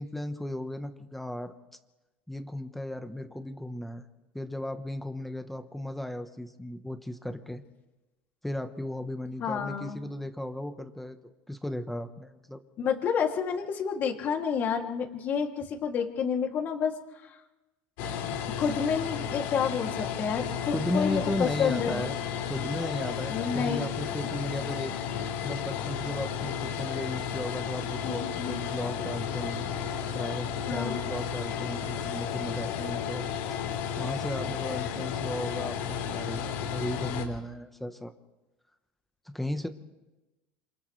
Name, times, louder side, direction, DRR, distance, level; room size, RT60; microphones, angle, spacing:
voice 1, 0.0-1.5 2.3-4.1 4.3-7.6 8.4-11.2 11.5-12.6 20.7-22.2 22.5-24.9 25.4-29.7 30.1-33.3 34.0-35.8 36.1-38.1 39.3-39.7, left 1 dB, 5° left, 7 dB, 1.1 m, -35 dB
voice 2, 9.4-10.0 12.8-16.9 17.2-17.4 18.6-22.0 23.3-23.9 28.0-28.6 30.7-31.0, left 6 dB, 40° left, 2 dB, 2.7 m, -29 dB
sound 1, 18.0-37.3, left 8 dB, 70° left, 4.0 m, -33 dB
28.0 x 27.5 x 3.3 m, 1.1 s
supercardioid pair, 140°, 5 cm